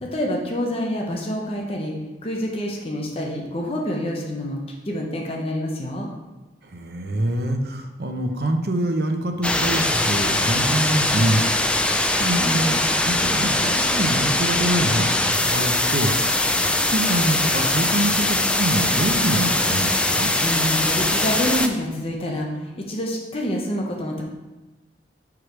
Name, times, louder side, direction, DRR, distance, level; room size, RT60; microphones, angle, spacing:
voice 1, 0.0-1.9 2.2-4.6 4.9-6.1 20.4-24.2, equal, 35° left, -1 dB, 0.9 m, -27 dB
voice 2, 6.6-11.4 12.2-16.1 16.5-20.3, right 1 dB, 60° right, 4 dB, 0.8 m, -25 dB
sound 1, 9.4-21.7, left 1 dB, 5° left, 0.3 m, -21 dB
4.9 x 4.8 x 6.0 m, 1.1 s
head